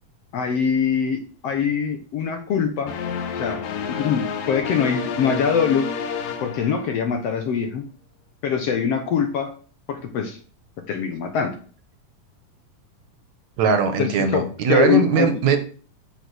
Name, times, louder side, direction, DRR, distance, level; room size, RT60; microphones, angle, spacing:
voice 1, 0.3-2.9 3.3-3.6 3.9-5.9 6.4-7.8 8.4-9.5 9.9-10.4 10.9-11.6 14.0-15.4, left 7 dB, 65° left, 6 dB, 1.8 m, -23 dB
sound 1, 2.9-7.3, left 6 dB, 90° left, 2.9 m, -30 dB
voice 2, 13.6-15.6, right 6 dB, 65° right, 8 dB, 2.5 m, -20 dB
8.4 x 7.0 x 6.8 m, 0.42 s
omnidirectional pair, 3.7 m